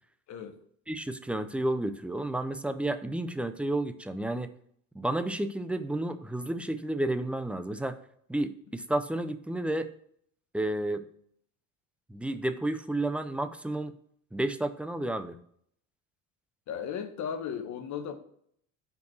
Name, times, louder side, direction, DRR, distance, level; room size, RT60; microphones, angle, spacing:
voice 1, 0.3-0.6 16.7-18.2, left 7 dB, 50° left, 7 dB, 1.2 m, -36 dB
voice 2, 0.9-4.5 4.9-8.0 8.3-9.9 10.5-11.0 12.1-13.9 14.3-15.4, right 1 dB, 5° right, 10 dB, 0.4 m, -31 dB
5.6 x 4.6 x 6.1 m, 0.66 s
cardioid pair, 120°, 37 cm